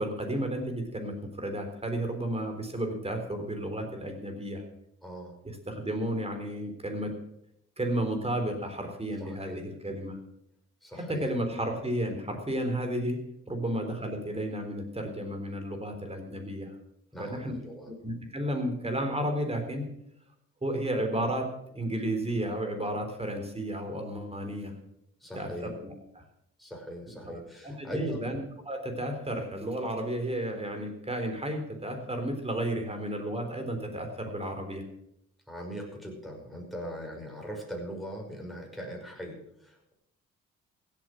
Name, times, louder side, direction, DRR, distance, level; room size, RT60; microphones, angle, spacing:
voice 1, 0.0-4.6 5.4-7.1 7.8-10.2 10.9-13.2 13.5-16.7 17.2-17.5 17.9-19.8 20.6-21.5 21.7-24.7 25.3-26.2 27.2-28.4 28.7-34.8, right 1 dB, 20° right, 5 dB, 3.7 m, -32 dB
voice 2, 5.0-5.4 9.2-9.6 10.8-11.3 17.1-17.9 25.2-25.7 26.6-28.3 35.5-39.9, equal, ahead, 0 dB, 5.7 m, -40 dB
16.0 x 8.7 x 6.3 m, 0.77 s
supercardioid pair, 65°, 29 cm